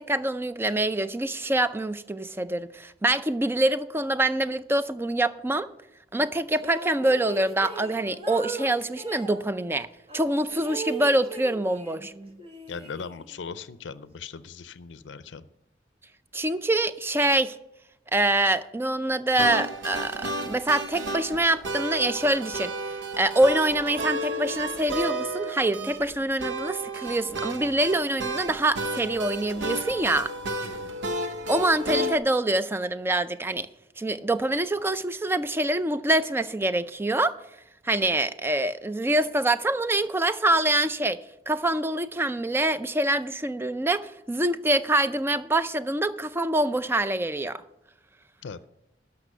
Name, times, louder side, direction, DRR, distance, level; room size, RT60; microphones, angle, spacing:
voice 1, 0.0-5.7 6.1-9.9 10.1-12.4 16.3-17.6 18.1-22.7 23.2-30.3 31.5-33.7 34.0-37.4 37.8-41.2 41.5-47.6, right 1 dB, 15° right, 0.4 m, -25 dB
sound 1, 6.5-9.4 10.1-12.1 12.4-13.5, right 3 dB, 35° right, 1.2 m, -39 dB
voice 2, 12.7-15.4 30.6-31.0 48.4-48.7, left 5 dB, 90° left, 0.5 m, -39 dB
sound 2, 19.4-32.2, right 1 dB, 85° right, 0.9 m, -32 dB
12.5 x 5.9 x 6.6 m
head